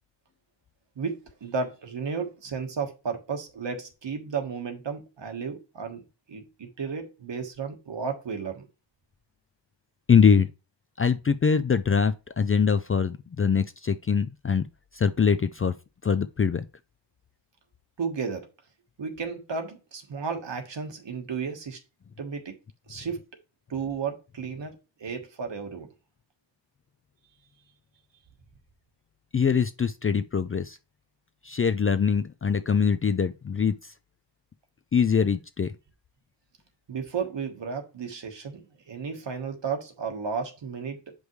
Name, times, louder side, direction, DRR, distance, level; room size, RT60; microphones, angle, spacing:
voice 1, 0.9-8.7 18.0-18.5 19.0-21.8 22.2-22.6 22.9-23.2 23.7-25.9 36.9-41.1, right 5 dB, 65° right, 1.5 m, -33 dB
voice 2, 10.1-10.5 11.0-14.7 14.9-15.7 16.0-16.6 29.3-30.8 31.4-33.9 34.9-35.7, left 6 dB, 30° left, 0.3 m, -23 dB
7.9 x 5.3 x 3.2 m
wide cardioid pair, 85°, 46 cm